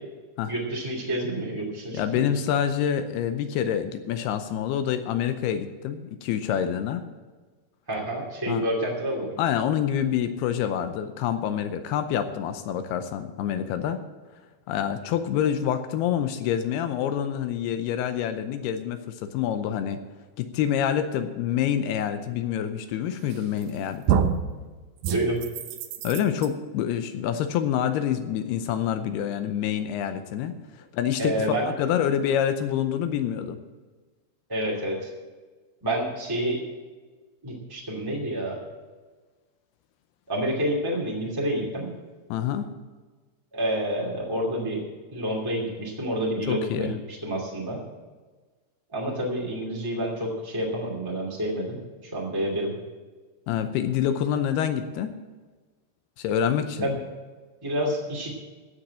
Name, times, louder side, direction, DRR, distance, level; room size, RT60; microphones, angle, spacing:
voice 1, 0.5-2.3 7.9-9.3 25.1-25.4 31.2-31.7 34.5-35.1 35.8-36.6 37.4-38.6 40.3-41.9 43.5-44.8 45.1-47.8 48.9-52.7 56.8-57.0 57.6-58.3, right 1 dB, 15° right, -3 dB, 0.8 m, -28 dB
voice 2, 1.9-7.0 8.5-8.6 9.4-14.0 14.7-20.0 20.4-24.3 26.0-30.5 30.9-33.6 42.3-42.7 46.5-46.9 53.5-55.1 56.2-57.0, left 9 dB, 80° left, 9 dB, 2.4 m, -27 dB
sound 1, 23.3-23.7 24.1-24.5 25.0-26.5, right 8 dB, 90° right, 1.9 m, -26 dB
16.0 x 5.9 x 8.7 m, 1.4 s
omnidirectional pair, 5.3 m